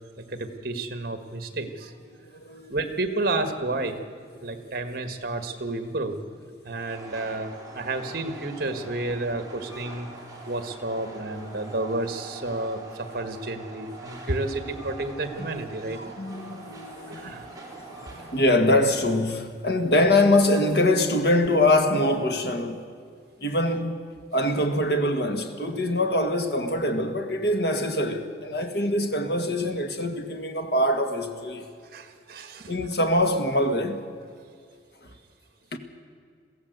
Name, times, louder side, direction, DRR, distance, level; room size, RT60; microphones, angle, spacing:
voice 1, 0.2-1.9 2.7-4.0 4.4-6.2 6.6-10.2 10.5-16.2 17.1-17.5 31.9-32.9, right 2 dB, 55° right, 1.6 m, -31 dB
voice 2, 2.1-2.8 4.4-4.6 8.6-8.7 16.2-17.4 18.1-22.8 23.4-24.0 24.3-31.7 32.7-34.0 35.7-35.8, left 1 dB, 65° left, 1.8 m, -24 dB
Train, 6.8-18.7, right 2 dB, 20° right, 3.7 m, -43 dB
22.0 x 15.5 x 8.1 m
head